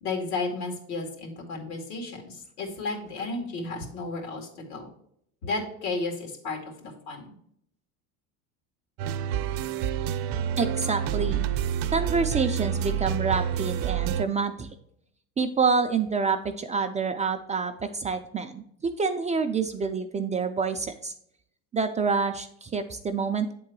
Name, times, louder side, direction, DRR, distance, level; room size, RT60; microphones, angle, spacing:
voice 1, 0.0-4.9 5.4-7.3, left 3 dB, 90° left, 1 dB, 2.3 m, -33 dB
sound 1, 9.0-14.2, right 9 dB, 70° right, 0.6 m, -28 dB
voice 2, 10.6-11.4 11.9-14.7 15.4-21.1 21.7-23.5, right 5 dB, 20° right, 5 dB, 0.3 m, -27 dB
7.9 x 3.8 x 4.5 m, 0.71 s
supercardioid pair, 110°, 41 cm